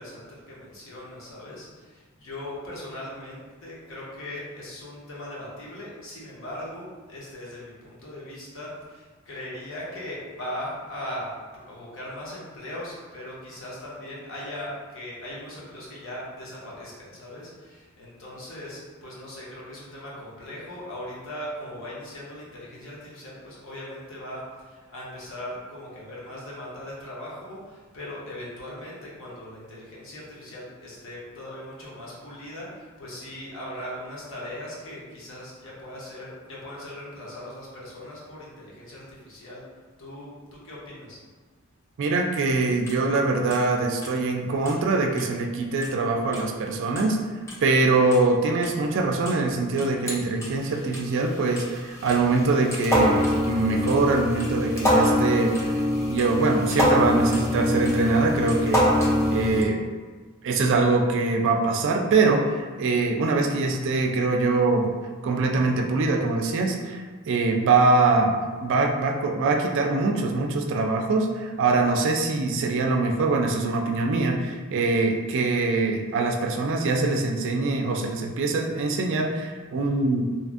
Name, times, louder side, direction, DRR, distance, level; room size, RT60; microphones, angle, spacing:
voice 1, 0.0-39.6 40.0-41.2, left 1 dB, 65° left, -6 dB, 0.9 m, -39 dB
voice 2, 42.0-47.2 47.6-55.8 56.1-59.8 60.4-64.9 65.2-80.2, right 3 dB, 60° right, 2 dB, 0.3 m, -23 dB
sound 1, 42.9-43.0 43.5-43.6 44.0-44.1 44.7-44.8 45.2-45.3 45.8-45.9 46.3-46.4 47.0-47.1 47.5-47.6 48.1-48.2 48.6-48.7 49.3-49.4 49.8-50.5 50.9-59.6, left 1 dB, 10° left, 0.4 m, -24 dB
2.8 x 2.5 x 2.4 m, 1.4 s
head